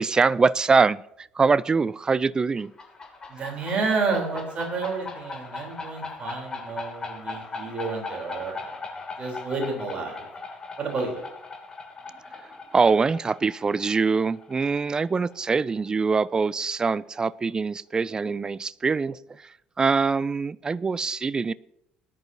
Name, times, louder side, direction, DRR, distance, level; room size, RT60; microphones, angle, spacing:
voice 1, 0.0-2.7 12.7-21.5, right 4 dB, 25° right, 20 dB, 0.4 m, -23 dB
sound 1, 2.6-16.0, left 3 dB, 25° left, 2.6 m, -39 dB
voice 2, 3.3-8.8 9.2-10.2 10.8-11.2, right 4 dB, 40° right, 1 dB, 3.7 m, -30 dB
19.5 x 10.5 x 2.8 m, 0.79 s
figure-of-eight pair, 60°, 3 cm